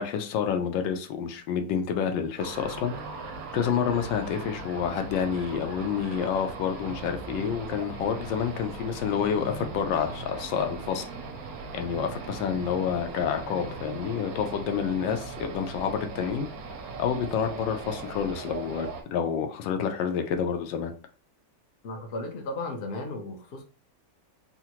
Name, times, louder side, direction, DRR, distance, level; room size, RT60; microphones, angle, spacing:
voice 1, 0.0-2.9 3.5-11.1 11.7-16.5 17.0-20.9, left 7 dB, 85° left, 1.3 m, -28 dB
sound 1, 2.4-19.0, right 4 dB, 70° right, 0.9 m, -39 dB
voice 2, 21.8-23.6, left 2 dB, 60° left, 0.6 m, -35 dB
3.7 x 2.1 x 2.9 m
omnidirectional pair, 2.0 m